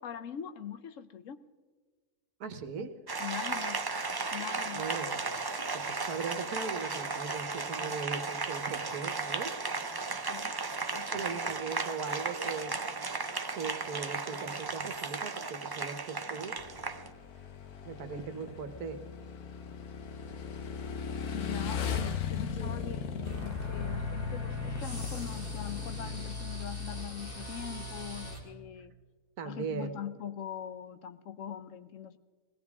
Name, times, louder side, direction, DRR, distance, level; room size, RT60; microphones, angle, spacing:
voice 1, 0.0-1.4 2.8-2.9 3.2-3.9 4.3-4.9 10.1-10.6 10.9-11.4 21.3-28.9 29.4-32.2, left 9 dB, 65° left, 1.0 m, -42 dB
voice 2, 2.4-2.9 4.7-5.3 5.7-9.5 11.1-12.8 13.5-16.5 17.8-19.0 22.6-22.9 29.4-30.1, right 5 dB, 85° right, 1.6 m, -39 dB
Applause, 3.1-17.1, right 4 dB, 35° right, 0.3 m, -35 dB
Motorcycle / Engine, 16.6-26.3, left 7 dB, 85° left, 1.5 m, -38 dB
sound 1, 23.2-28.4, left 3 dB, 35° left, 3.3 m, -38 dB
21.0 x 17.5 x 3.6 m
omnidirectional pair, 1.5 m